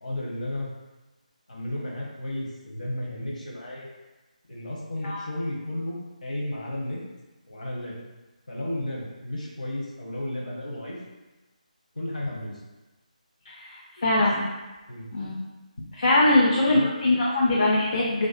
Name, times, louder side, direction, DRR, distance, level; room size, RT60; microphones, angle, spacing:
voice 1, 0.0-0.7 1.5-3.9 4.5-7.0 7.5-8.0 8.5-11.0 11.9-12.6 14.0-14.2 14.9-15.1 16.7-16.9, left 1 dB, 65° left, -4 dB, 0.8 m, -33 dB
voice 2, 13.4-14.4 15.1-15.3 15.9-18.3, left 2 dB, 50° left, -4 dB, 0.4 m, -22 dB
2.4 x 2.3 x 2.4 m, 1.1 s
figure-of-eight pair, 155°, 4 cm